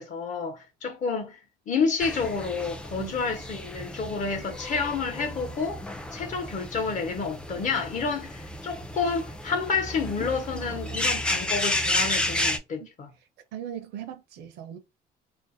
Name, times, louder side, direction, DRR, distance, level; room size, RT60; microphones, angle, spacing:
voice 1, 0.0-1.4 1.7-5.8 6.1-13.1, left 5 dB, 45° left, 0.8 m, -29 dB
sound 1, 2.0-12.6, left 1 dB, 5° left, 0.3 m, -32 dB
voice 2, 10.7-11.4 12.8-12.9 13.5-14.8, right 9 dB, 80° right, 0.5 m, -40 dB
2.5 x 2.0 x 2.5 m
cardioid pair, 110°, 17 cm